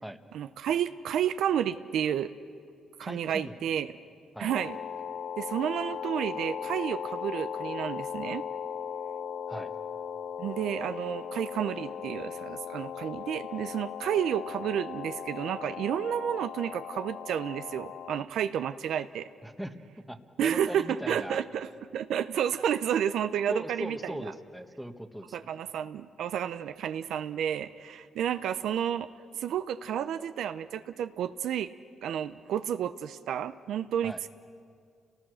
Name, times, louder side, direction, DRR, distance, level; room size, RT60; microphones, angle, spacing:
voice 1, 0.3-2.3 3.0-3.9 4.4-4.8 5.4-8.4 10.4-19.3 20.4-24.2 25.3-29.1 29.3-31.7 32.0-34.3, right 9 dB, 75° right, 11 dB, 0.6 m, -31 dB
voice 2, 3.0-3.5 4.3-4.5 9.5-9.7 19.4-21.4 23.5-25.5 34.0-34.2, equal, ahead, 7 dB, 1.4 m, -39 dB
sound 1, 4.5-18.2, left 7 dB, 75° left, 0.6 m, -38 dB
29.5 x 19.0 x 6.4 m, 2.2 s
cardioid pair, 90°, 0 cm